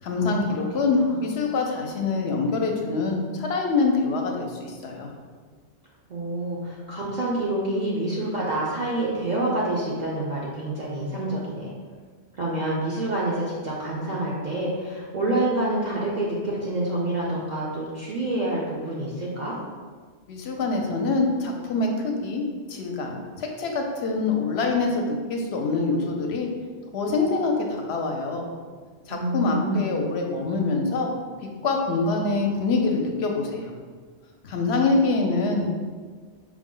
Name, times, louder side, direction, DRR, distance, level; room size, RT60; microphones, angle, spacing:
voice 1, 0.0-5.1 20.3-26.5 26.9-28.5 29.1-31.1 31.6-33.7 34.4-35.8, left 3 dB, 75° left, 2 dB, 0.8 m, -25 dB
voice 2, 6.1-11.7 12.3-19.6 29.1-29.9, right 1 dB, 50° right, -6 dB, 0.6 m, -27 dB
4.8 x 2.0 x 3.7 m, 1.5 s
omnidirectional pair, 1.1 m